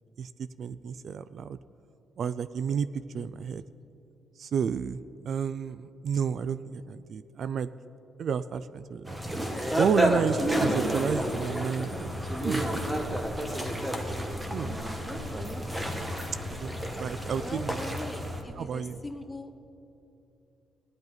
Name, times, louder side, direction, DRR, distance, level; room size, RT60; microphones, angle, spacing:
voice 1, 0.2-1.6 2.2-3.6 4.4-5.0 5.3-7.7 8.2-9.2 9.8-12.2 12.4-12.6 14.5-14.9 16.6-17.8 18.6-19.0, right 7 dB, 60° right, 15 dB, 0.3 m, -31 dB
sound 1, 9.0-18.4, equal, 10° right, 1.4 m, -30 dB
voice 2, 17.4-19.6, left 2 dB, 15° left, 5 dB, 1.0 m, -41 dB
16.0 x 10.5 x 4.0 m, 2.7 s
cardioid pair, 90°, 0 cm